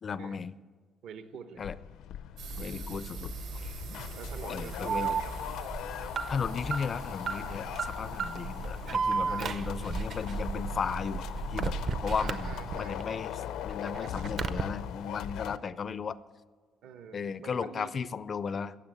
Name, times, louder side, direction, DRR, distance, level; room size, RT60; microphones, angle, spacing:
voice 1, 0.0-0.6 1.6-1.8 2.6-3.3 3.6-3.7 4.5-5.2 6.3-11.8 12.0-16.2 17.1-18.8, left 6 dB, 30° left, 16 dB, 0.4 m, -35 dB
voice 2, 1.0-1.6 4.1-5.3 9.2-9.6 12.2-13.4 16.8-18.0, right 7 dB, 65° right, 10 dB, 0.9 m, -45 dB
sound 1, 1.6-15.6, left 10 dB, 75° left, 0.6 m, -40 dB
sound 2, 2.4-12.8, right 3 dB, 85° right, 3.9 m, -41 dB
Alarm, 4.8-13.0 13.4-14.6, right 5 dB, 40° right, 0.6 m, -34 dB
16.0 x 7.7 x 8.9 m, 1.5 s
cardioid pair, 180°, 0 cm